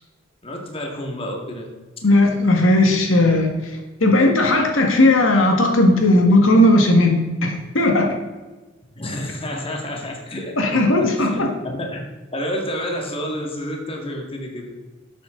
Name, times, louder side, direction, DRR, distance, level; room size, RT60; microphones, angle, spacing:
voice 1, 0.4-1.7 8.9-12.0 12.3-14.8, equal, 30° left, 1 dB, 2.0 m, -29 dB
voice 2, 2.0-3.5 4.0-8.1 10.6-11.5, left 1 dB, 80° left, 3 dB, 1.7 m, -16 dB
12.0 x 8.4 x 3.8 m, 1.2 s
head